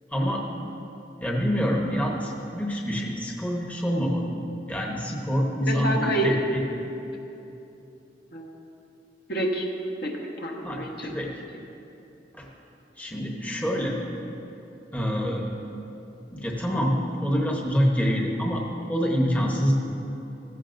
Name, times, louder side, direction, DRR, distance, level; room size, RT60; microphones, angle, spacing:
voice 1, 0.1-0.5 1.2-4.3 4.7-6.7 10.6-11.3 12.3-12.5 13.0-14.0 14.9-15.5 16.3-19.7, equal, 10° left, -1 dB, 0.9 m, -26 dB
voice 2, 5.6-6.4 8.3-8.5 9.3-9.7 10.0-11.1, right 1 dB, 60° left, 0 dB, 1.2 m, -28 dB
15.0 x 14.5 x 2.6 m, 3.0 s
head